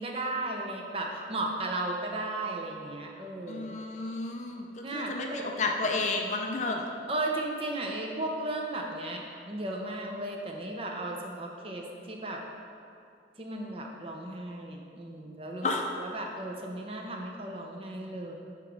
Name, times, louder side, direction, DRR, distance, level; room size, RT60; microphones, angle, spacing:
voice 1, 0.0-3.8 4.8-5.6 7.1-12.4 13.4-15.7 16.0-18.3, right 2 dB, 30° right, 1 dB, 0.6 m, -35 dB
voice 2, 3.5-4.6 4.9-6.9 15.6-15.8, left 3 dB, 40° left, 3 dB, 0.4 m, -31 dB
8.7 x 3.1 x 4.7 m, 2.5 s
head